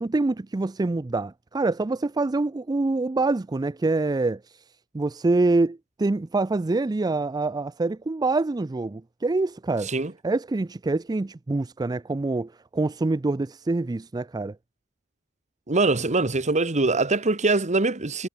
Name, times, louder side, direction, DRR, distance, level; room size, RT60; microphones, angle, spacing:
voice 1, 0.0-9.9 10.2-14.6, right 3 dB, 20° right, 0.4 m, -25 dB
voice 2, 15.7-18.3, right 3 dB, 35° right, 1.6 m, -23 dB
head